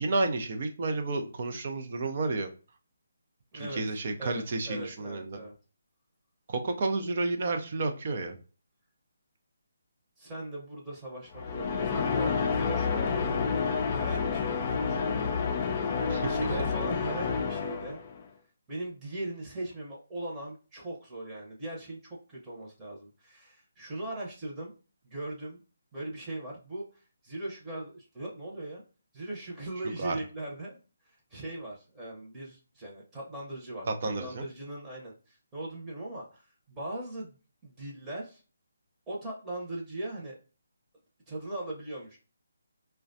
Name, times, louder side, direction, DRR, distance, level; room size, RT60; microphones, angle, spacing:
voice 1, 0.0-2.5 3.5-5.4 6.5-8.4 16.1-16.3 30.0-30.2 33.9-34.5, right 3 dB, 45° right, 4 dB, 0.5 m, -31 dB
voice 2, 3.5-5.5 10.2-13.5 13.9-15.2 15.6-18.0 18.7-24.7 25.0-25.6 25.9-28.8 29.1-30.8 31.1-37.4 37.6-38.4 39.1-40.4 41.3-42.2, right 1 dB, 15° right, -3 dB, 0.9 m, -39 dB
sound 1, 11.3-18.2, left 5 dB, 35° left, 0.4 m, -29 dB
4.6 x 2.2 x 2.6 m, 0.36 s
figure-of-eight pair, 150°, 0 cm